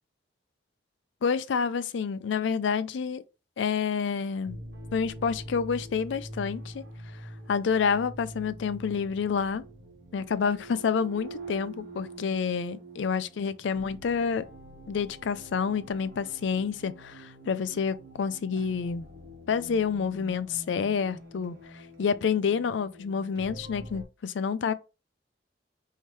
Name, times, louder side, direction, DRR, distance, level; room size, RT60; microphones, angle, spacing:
voice 1, 1.2-3.2 3.6-4.6 4.9-9.6 10.1-14.5 14.9-19.1 19.5-24.7, left 6 dB, 80° left, 0.4 m, -29 dB
sound 1, 4.4-24.0, right 1 dB, 55° right, 1.0 m, -45 dB
4.6 x 2.8 x 3.1 m
head